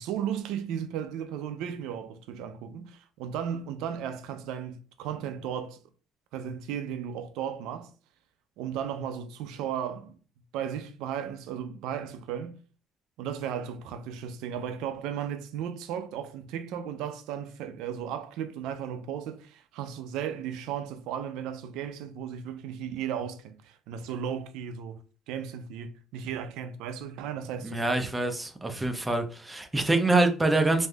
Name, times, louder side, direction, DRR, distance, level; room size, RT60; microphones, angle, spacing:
voice 1, 0.0-5.8 6.3-7.9 8.6-10.1 10.5-12.6 13.2-25.0 25.3-27.9, right 8 dB, 80° right, 0.4 m, -35 dB
voice 2, 27.6-30.9, right 2 dB, 15° right, 0.6 m, -25 dB
3.2 x 2.6 x 2.3 m
supercardioid pair, 70°, 0 cm